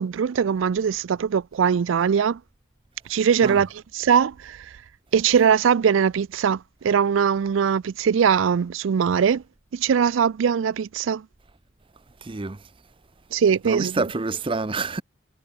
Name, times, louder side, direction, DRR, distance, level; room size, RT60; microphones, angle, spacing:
voice 1, 0.0-2.4 3.1-4.8 5.1-9.4 9.7-11.2 13.3-14.0, right 7 dB, 80° right, 0.4 m, -21 dB
voice 2, 12.2-12.6 13.6-15.0, right 3 dB, 25° right, 0.6 m, -27 dB
head